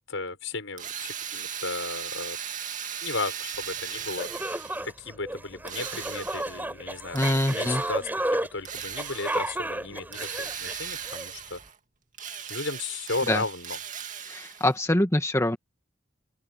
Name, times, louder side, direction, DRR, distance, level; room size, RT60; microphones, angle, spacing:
voice 1, 0.0-2.4 3.0-4.3 4.8-11.6 12.5-13.8, left 3 dB, 75° left, 6.4 m, -35 dB
Drill, 0.8-4.9 5.7-6.6 7.2-8.0 8.6-9.6 10.1-11.8 12.1-14.8, right 8 dB, 40° right, 2.2 m, -37 dB
sound 1, 3.8-3.9 4.2-11.3, right 1 dB, 10° right, 7.1 m, -32 dB
voice 2, 7.1-7.8 13.3-13.4 14.2-15.6, left 1 dB, 15° left, 1.7 m, -24 dB
open air
head